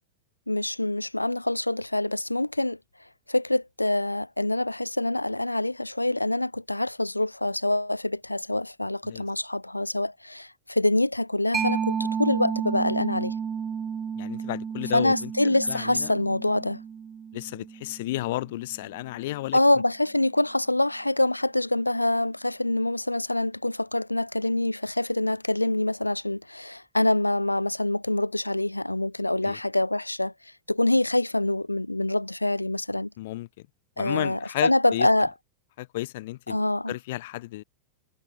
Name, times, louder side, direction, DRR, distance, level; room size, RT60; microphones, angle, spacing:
voice 1, 0.5-2.8 3.3-13.3 14.9-16.8 19.5-30.3 30.7-33.1 34.0-35.3 36.5-36.9, left 1 dB, 85° left, 0.4 m, -25 dB
Mallet percussion, 11.5-18.8, right 7 dB, 20° right, 3.6 m, -32 dB
voice 2, 14.2-16.1 17.3-19.6 29.4-29.6 33.2-33.7 34.0-35.1 35.8-36.6 36.9-37.6, left 17 dB, 55° left, 2.7 m, -33 dB
figure-of-eight pair, 90°, 0 cm